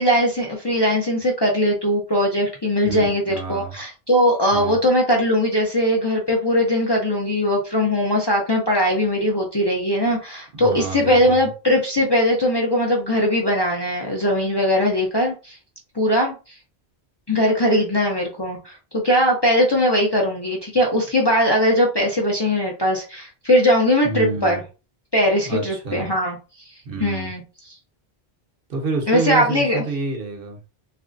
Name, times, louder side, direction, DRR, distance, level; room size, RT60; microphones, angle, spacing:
voice 1, 0.0-15.6 16.0-16.3 17.3-24.6 25.1-26.4 27.0-27.4 29.1-29.8, equal, 30° left, 0.5 m, -20 dB
voice 2, 2.8-3.8 4.5-4.8 10.5-11.5 24.0-24.6 25.4-26.1 26.8-27.3 28.7-30.6, right 3 dB, 65° right, 0.9 m, -29 dB
3.1 x 2.5 x 2.5 m
omnidirectional pair, 1.1 m